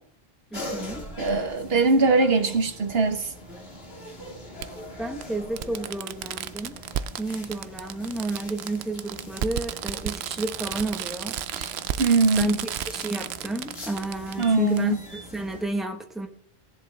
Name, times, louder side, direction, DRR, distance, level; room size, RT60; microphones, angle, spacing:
sound 1, 0.5-15.6, equal, 75° left, 2.6 m, -42 dB
voice 1, 0.5-1.1 5.0-6.8 7.2-11.4 12.4-16.3, right 3 dB, ahead, 1.2 m, -31 dB
voice 2, 1.2-3.3 11.6-11.7 12.0-12.5 14.4-15.0, right 3 dB, 70° right, 1.3 m, -21 dB
Fireworks, 1.3-1.4 2.9-3.0 4.6-4.7 5.2-5.3 5.6-14.4 14.8-14.9, right 10 dB, 90° right, 0.8 m, -33 dB
18.0 x 7.4 x 3.4 m
omnidirectional pair, 1.0 m